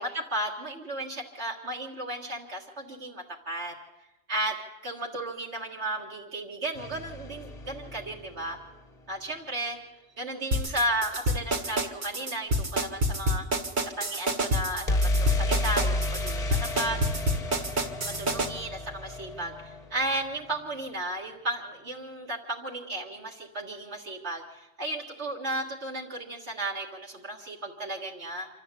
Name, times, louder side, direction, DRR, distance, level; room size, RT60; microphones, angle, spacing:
voice 1, 0.0-3.7 4.3-4.6 4.8-8.6 9.1-9.8 10.2-13.4 14.0-17.0 18.1-28.5, right 1 dB, 75° right, -2 dB, 2.0 m, -34 dB
sound 1, 6.7-8.8 14.9-20.6, left 1 dB, 35° left, 1.1 m, -31 dB
sound 2, 10.5-18.5, equal, 45° right, 1.3 m, -27 dB
26.0 x 13.0 x 8.2 m, 0.97 s
omnidirectional pair, 1.1 m